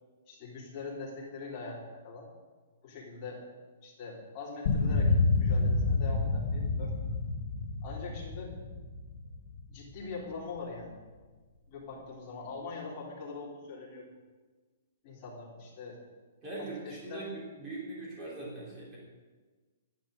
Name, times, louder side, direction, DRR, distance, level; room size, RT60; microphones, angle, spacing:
voice 1, 0.3-2.3 2.8-3.4 3.8-7.0 7.8-8.6 9.7-11.0 11.7-14.1 15.0-16.0 16.6-17.2, left 4 dB, 20° left, -6 dB, 3.4 m, -42 dB
sound 1, 4.7-10.0, left 3 dB, 40° left, 1.5 m, -29 dB
voice 2, 16.4-19.0, right 2 dB, 15° right, -5 dB, 3.6 m, -41 dB
13.5 x 10.5 x 6.5 m, 1.3 s
hypercardioid pair, 180°, 0 cm